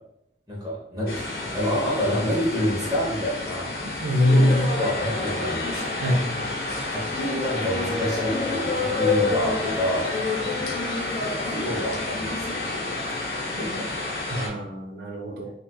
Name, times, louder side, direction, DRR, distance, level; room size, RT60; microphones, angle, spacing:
voice 1, 0.5-1.2 1.5-4.3 4.7-6.4 6.9-10.1 11.2-13.0 13.6-13.9, equal, 25° right, -5 dB, 0.7 m, -28 dB
sound 1, 1.1-14.5, left 3 dB, 60° left, 0.7 m, -28 dB
voice 2, 4.0-4.8 6.0-6.3 14.3-15.5, left 1 dB, 70° right, -1 dB, 0.4 m, -22 dB
4.2 x 2.3 x 2.2 m, 0.78 s
head